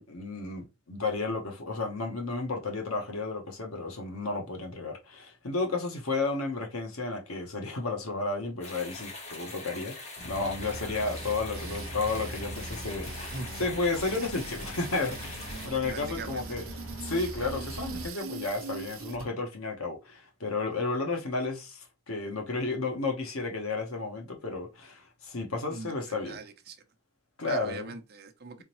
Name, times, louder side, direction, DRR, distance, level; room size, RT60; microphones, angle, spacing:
voice 1, 0.0-16.6 17.0-26.4 27.4-27.9, left 3 dB, 80° left, 1.1 m, -32 dB
sound 1, 8.6-15.7, left 2 dB, 35° left, 1.2 m, -43 dB
sound 2, 10.2-18.1, equal, 60° left, 1.5 m, -41 dB
voice 2, 10.6-11.0 13.3-13.7 15.5-15.6 15.9-16.7 25.7-26.8 27.4-28.6, right 4 dB, 50° right, 0.7 m, -42 dB
sound 3, 11.0-19.3, right 5 dB, 85° right, 0.8 m, -43 dB
3.9 x 3.6 x 3.0 m
head